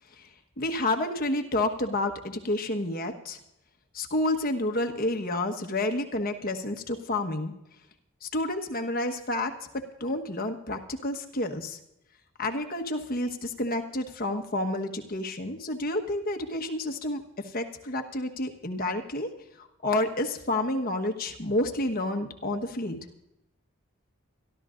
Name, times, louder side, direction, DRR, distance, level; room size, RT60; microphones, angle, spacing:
voice 1, 0.6-3.4 3.9-7.5 8.2-11.8 12.4-19.3 19.6-23.0, left 1 dB, 45° left, 4 dB, 1.2 m, -30 dB
24.5 x 12.5 x 2.5 m, 0.84 s
head